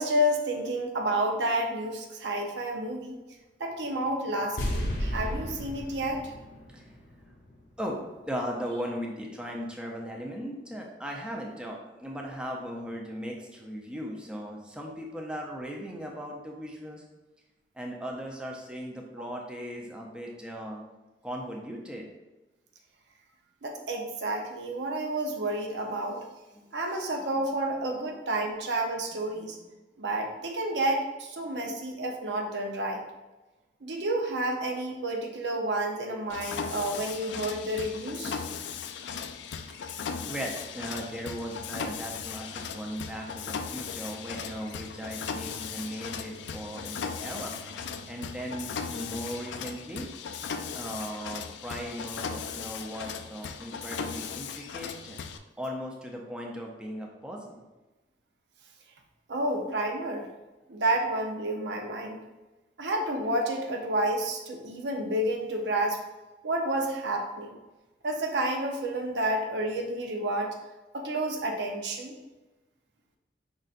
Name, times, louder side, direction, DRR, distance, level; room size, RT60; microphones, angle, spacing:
voice 1, 0.0-3.2 3.6-6.3 19.2-19.3 23.6-26.2 26.7-29.6 30.0-33.0 33.8-38.4 59.3-60.3 60.7-62.2 62.8-66.0 66.4-67.6 68.0-70.5 70.9-72.1, right 1 dB, 80° right, 2 dB, 0.7 m, -30 dB
sound 1, 4.6-8.0, equal, 65° left, 0.9 m, -34 dB
voice 2, 7.8-17.0 17.7-20.8 21.2-22.1 26.5-26.7 29.1-29.5 40.0-47.5 48.1-50.1 50.7-55.2 55.6-57.6, equal, 5° right, -1 dB, 0.5 m, -38 dB
Mechanisms, 36.3-55.4, left 6 dB, 85° left, 0.4 m, -37 dB
5.4 x 3.9 x 2.5 m, 1.1 s
head